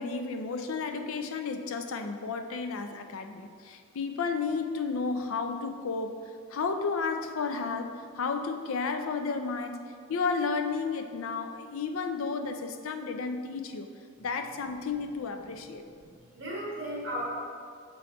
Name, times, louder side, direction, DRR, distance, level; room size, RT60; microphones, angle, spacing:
voice 1, 0.0-6.2 6.5-13.9 14.2-15.8, left 4 dB, 75° left, 6 dB, 0.5 m, -32 dB
voice 2, 15.8-17.3, equal, 55° right, -6 dB, 1.6 m, -36 dB
6.9 x 4.2 x 4.4 m, 2.1 s
head